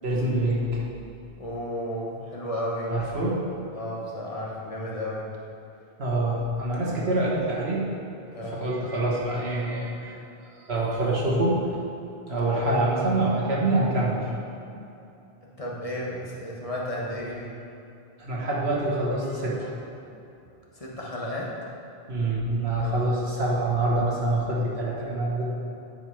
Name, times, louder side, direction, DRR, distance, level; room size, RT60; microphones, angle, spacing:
voice 1, 0.0-0.8 2.9-3.4 6.0-7.8 8.5-10.1 10.7-11.6 12.3-14.3 18.2-19.7 22.1-25.4, right 2 dB, 75° right, -5 dB, 1.8 m, -25 dB
voice 2, 1.4-2.9 3.7-5.3 8.3-8.7 12.5-12.7 15.4-17.6 20.7-21.5 22.8-22.9, equal, 35° left, -4 dB, 1.3 m, -33 dB
9.9 x 4.9 x 4.7 m, 2.8 s
omnidirectional pair, 1.1 m